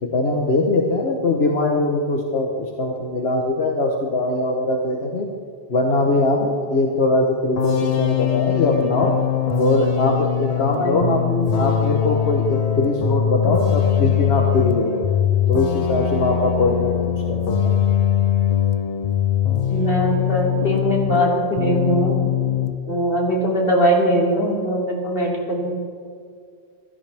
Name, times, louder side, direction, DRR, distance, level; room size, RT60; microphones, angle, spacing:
voice 1, 0.0-5.3 5.7-9.1 9.6-11.2 11.6-14.9 15.5-16.9 17.3-17.8, left 2 dB, 75° left, 1 dB, 1.3 m, -21 dB
sound 1, 7.6-21.3 21.6-22.8, left 9 dB, 45° left, 0.6 m, -21 dB
voice 2, 10.8-11.6 19.7-22.1 22.9-25.7, equal, 60° left, -3 dB, 3.2 m, -21 dB
15.5 x 13.5 x 3.4 m, 2.2 s
omnidirectional pair, 1.1 m